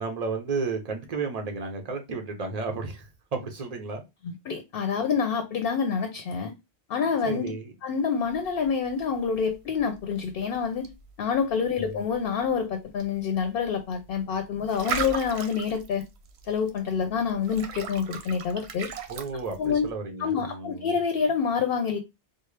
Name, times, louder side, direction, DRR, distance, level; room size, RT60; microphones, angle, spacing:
voice 1, 0.0-4.0 7.2-7.7 11.8-12.0 19.1-20.9, right 4 dB, 40° right, 0.9 m, -33 dB
voice 2, 4.2-6.5 6.9-7.5 7.8-10.9 11.2-16.0 16.5-18.9 19.6-19.9 20.2-22.0, left 6 dB, 65° left, 0.8 m, -27 dB
sound 1, 8.2-19.9, right 6 dB, 80° right, 0.9 m, -40 dB
4.2 x 2.0 x 3.2 m
omnidirectional pair, 1.1 m